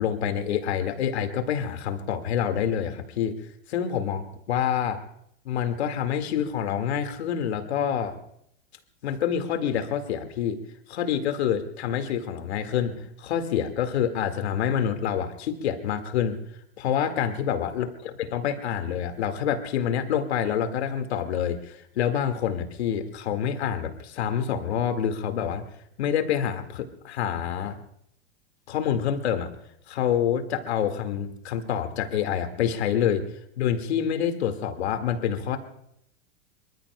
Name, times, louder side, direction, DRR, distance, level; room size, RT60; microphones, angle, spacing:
voice 1, 0.0-3.3 3.7-5.0 5.5-8.2 9.0-10.6 10.9-16.4 16.8-17.9 18.2-25.6 26.0-27.8 28.7-29.5 29.9-33.2 33.6-35.6, left 9 dB, 70° left, 7 dB, 2.0 m, -27 dB
25.5 x 23.5 x 2.2 m, 0.73 s
hypercardioid pair, 100°, 33 cm